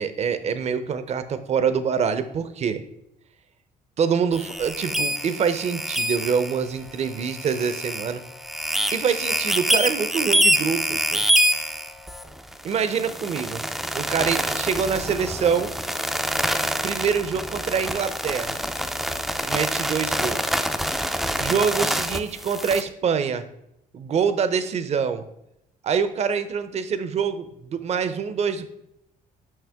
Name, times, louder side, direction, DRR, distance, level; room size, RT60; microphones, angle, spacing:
voice 1, 0.0-2.8 4.0-8.2 8.9-11.3 12.6-13.6 13.9-15.7 16.8-18.6 19.4-20.4 21.4-23.5 23.9-25.3 25.8-28.7, right 6 dB, 45° right, 11 dB, 0.6 m, -25 dB
sound 1, 4.3-22.8, equal, ahead, 0.4 m, -26 dB
sound 2, 14.9-21.8, left 7 dB, 65° left, 1.1 m, -49 dB
6.5 x 5.7 x 3.5 m, 0.79 s
cardioid pair, 110°, 15 cm